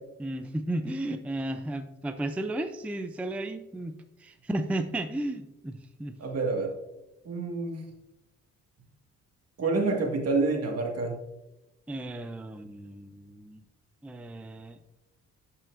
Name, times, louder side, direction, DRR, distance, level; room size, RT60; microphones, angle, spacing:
voice 1, 0.2-6.1 11.9-13.6 14.0-14.8, right 1 dB, 5° right, 8 dB, 0.4 m, -34 dB
voice 2, 6.2-6.7 7.3-7.8 9.6-11.1, right 3 dB, 55° right, 1 dB, 1.8 m, -27 dB
12.0 x 5.6 x 2.5 m, 0.96 s
cardioid pair, 90°, 30 cm